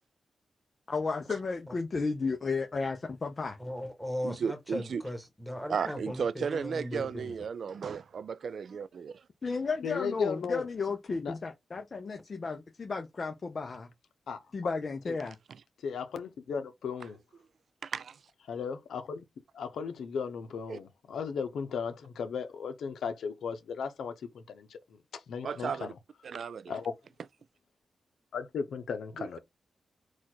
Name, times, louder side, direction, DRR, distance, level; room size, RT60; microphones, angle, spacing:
voice 1, 0.9-3.6 9.4-13.9 14.5-15.4, left 4 dB, 40° left, 0.7 m, -33 dB
voice 2, 3.6-7.3, equal, 5° left, 1.4 m, -37 dB
voice 3, 4.2-5.0 5.7-9.2 17.8-18.2 20.7-20.8 25.4-25.9 26.2-26.7 29.2-29.4, right 6 dB, 65° right, 0.3 m, -34 dB
voice 4, 9.8-10.7 11.2-11.3 14.3-14.7 15.1-15.2 15.8-17.2 18.5-19.2 19.5-26.0 26.7-26.9 28.3-29.4, left 6 dB, 90° left, 0.8 m, -36 dB
4.2 x 2.5 x 4.4 m
cardioid pair, 100°, 0 cm